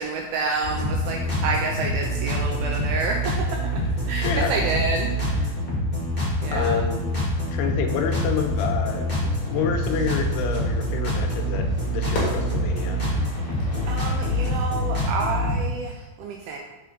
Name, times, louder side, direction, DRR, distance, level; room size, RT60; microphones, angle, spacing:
voice 1, 0.0-3.3 4.1-5.5 6.4-6.8 13.9-16.6, right 4 dB, 85° right, 1 dB, 2.1 m, -29 dB
sound 1, 0.6-15.6, equal, 25° left, 1.2 m, -26 dB
voice 2, 4.2-4.6 6.5-7.0 7.5-9.1 9.5-13.0, left 6 dB, 85° left, 4 dB, 2.7 m, -28 dB
Fire / Fireworks, 9.4-14.9, left 1 dB, 55° left, 1.5 m, -37 dB
5.7 x 5.0 x 3.8 m, 1.1 s
omnidirectional pair, 4.7 m